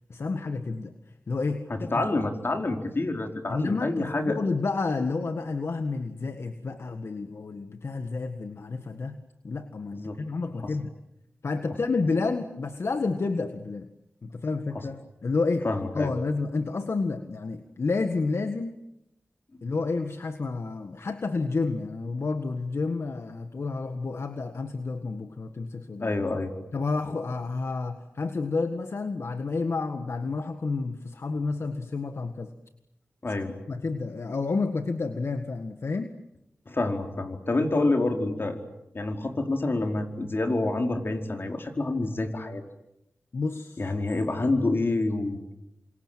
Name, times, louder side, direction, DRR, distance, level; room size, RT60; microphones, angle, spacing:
voice 1, 0.1-2.2 3.5-9.2 9.4-10.9 11.4-13.9 14.2-15.7 15.9-18.7 19.6-26.2 26.7-32.5 33.2-33.3 33.7-36.1 43.3-43.9, left 3 dB, 70° left, 8 dB, 1.7 m, -30 dB
voice 2, 1.7-4.4 9.9-10.2 10.6-10.7 15.6-16.1 26.0-26.5 33.2-33.5 36.7-38.6 38.9-42.6 43.8-45.5, left 2 dB, 55° left, 4 dB, 4.8 m, -27 dB
29.5 x 26.0 x 7.7 m, 0.83 s
cardioid pair, 50°, 5 cm